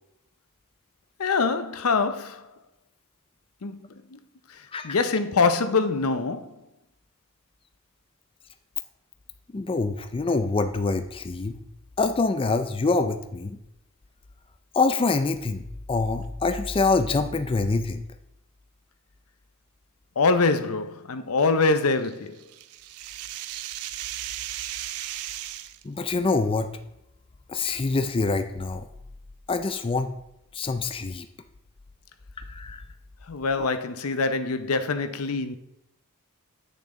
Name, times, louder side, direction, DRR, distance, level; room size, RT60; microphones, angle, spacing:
voice 1, 1.2-2.5 3.6-3.8 4.1-4.2 4.5-6.6 20.2-22.4 33.3-35.6, left 4 dB, 75° left, 0.7 m, -24 dB
voice 2, 9.5-11.6 12.0-13.6 14.7-15.6 15.9-18.0 25.8-26.7 27.5-28.9 29.5-30.1 30.5-31.3 32.5-32.9 33.5-33.7, left 3 dB, 25° left, 0.4 m, -25 dB
sound 1, 22.0-25.8, right 13 dB, 80° right, 0.4 m, -36 dB
8.3 x 6.7 x 3.7 m
head